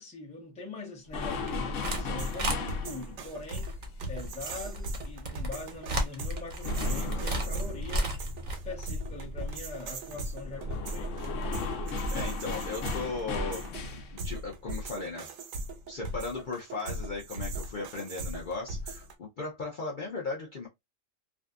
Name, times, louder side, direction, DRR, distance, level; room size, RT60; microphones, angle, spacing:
voice 1, 0.0-3.7 4.1-11.3, left 3 dB, 5° left, 0.6 m, -43 dB
sound 1, 1.1-5.4 5.7-14.2, left 2 dB, 70° left, 1.0 m, -36 dB
sound 2, 1.3-2.0 2.3-2.6 3.4-8.5, right 1 dB, 45° right, 0.7 m, -34 dB
sound 3, 1.9-19.1, right 1 dB, 80° right, 1.0 m, -39 dB
voice 2, 12.1-15.3 15.9-20.7, left 3 dB, 55° left, 0.6 m, -37 dB
2.6 x 2.3 x 2.3 m
omnidirectional pair, 1.4 m